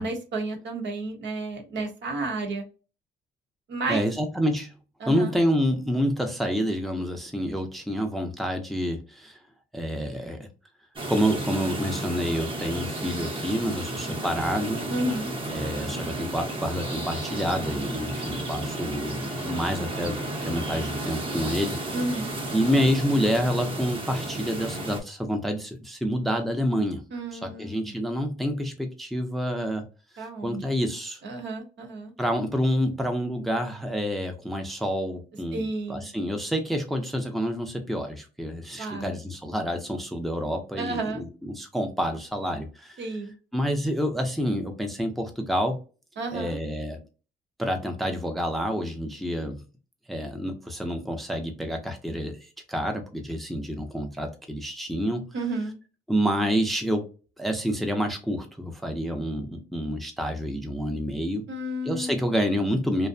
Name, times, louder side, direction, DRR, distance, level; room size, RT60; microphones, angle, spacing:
voice 1, 0.0-2.6 3.7-4.1 5.0-5.4 14.9-15.3 21.9-22.3 27.1-27.9 30.2-30.6 31.2-32.1 35.5-36.1 38.8-39.1 40.8-41.2 43.0-43.3 46.2-46.6 55.3-55.8 61.5-62.3, right 2 dB, 65° right, 4 dB, 0.9 m, -31 dB
voice 2, 3.9-4.7 5.1-9.4 9.7-10.5 11.1-14.8 15.5-20.2 20.5-21.8 22.5-27.0 27.3-29.8 30.2-31.2 32.2-43.0 43.5-45.8 46.3-47.0 47.6-49.6 50.1-55.3 56.1-57.1 57.4-61.4 61.9-63.1, equal, ahead, 4 dB, 0.5 m, -28 dB
sound 1, 11.0-25.0, right 1 dB, 25° right, 0.8 m, -32 dB
2.5 x 2.1 x 2.5 m, 0.33 s
cardioid pair, 90°, 20 cm